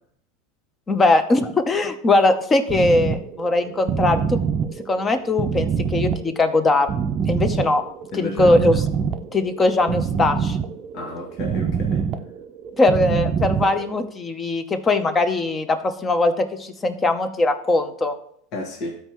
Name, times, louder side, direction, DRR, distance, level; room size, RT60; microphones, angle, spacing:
voice 1, 0.9-4.4 4.9-6.9 7.3-7.8 8.1-8.8 9.3-10.6 12.8-18.1, left 2 dB, 20° left, 0.8 m, -20 dB
sound 1, 2.7-14.1, right 6 dB, 35° right, 0.6 m, -25 dB
voice 2, 8.1-8.6 10.9-12.1 18.5-19.0, left 2 dB, 55° left, 1.6 m, -31 dB
13.0 x 4.5 x 3.1 m
supercardioid pair, 115°, 0 cm